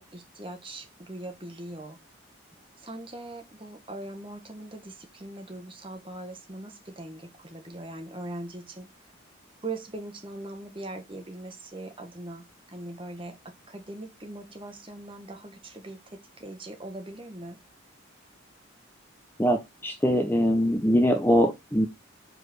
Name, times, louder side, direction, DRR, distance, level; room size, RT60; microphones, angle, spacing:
voice 1, 0.0-2.0 2.8-8.9 9.6-12.4 12.7-13.4 13.7-17.6, right 2 dB, 25° right, 1.4 m, -40 dB
voice 2, 19.4-21.9, equal, 10° left, 0.8 m, -22 dB
5.0 x 4.9 x 6.1 m
head